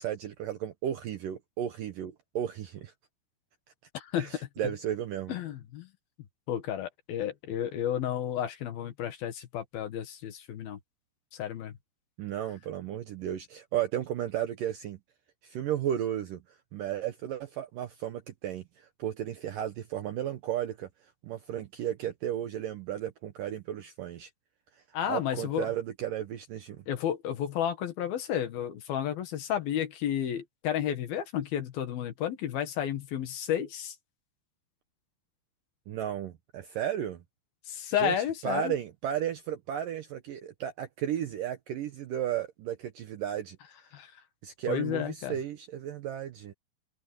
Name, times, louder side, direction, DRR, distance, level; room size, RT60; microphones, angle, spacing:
voice 1, 0.0-2.9 4.2-5.3 12.2-15.0 15.4-20.9 21.2-24.3 25.1-26.8 35.9-37.2 37.9-38.1 38.4-43.6 44.4-46.5, right 10 dB, 70° right, 2.1 m, -34 dB
voice 2, 3.9-4.5 5.3-5.9 6.5-10.8 11.3-11.7 24.9-25.7 26.9-34.0 37.7-38.7 43.9-44.1 44.7-45.4, left 10 dB, 65° left, 3.1 m, -32 dB
omnidirectional pair, 5.1 m